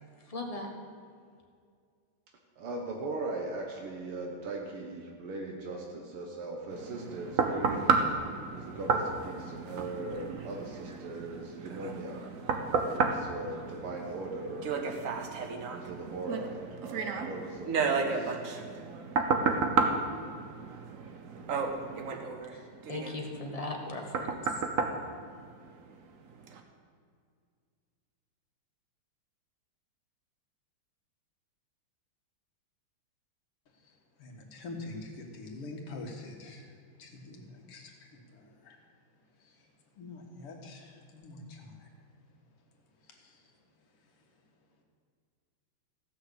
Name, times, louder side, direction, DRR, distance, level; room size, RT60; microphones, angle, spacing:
voice 1, 0.2-0.7 22.5-24.6, left 2 dB, 20° left, 1 dB, 1.2 m, -38 dB
voice 2, 2.6-8.0 8.5-12.2 12.9-14.9 15.7-18.4, right 2 dB, 80° right, 1 dB, 2.1 m, -39 dB
sound 1, 6.7-26.0 26.5-26.6, right 4 dB, 50° right, 1.0 m, -32 dB
voice 3, 33.7-38.8 39.4-39.7 39.9-41.9 43.0-43.6 44.0-44.4, left 2 dB, 85° left, 2 dB, 2.6 m, -46 dB
15.5 x 6.3 x 8.1 m, 2.2 s
omnidirectional pair, 2.4 m